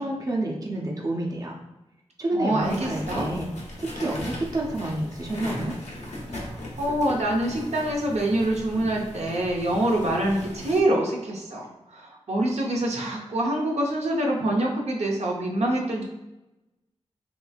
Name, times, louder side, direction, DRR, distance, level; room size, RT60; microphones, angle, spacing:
voice 1, 0.0-1.6 2.2-3.5 4.0-5.8, right 1 dB, 30° right, -1 dB, 0.6 m, -29 dB
voice 2, 2.3-3.3 6.3-16.0, right 1 dB, 75° right, -1 dB, 0.7 m, -25 dB
sound 1, 2.6-10.8, left 1 dB, 80° left, 0.9 m, -38 dB
3.2 x 3.0 x 2.3 m, 0.98 s
wide cardioid pair, 80°, 11 cm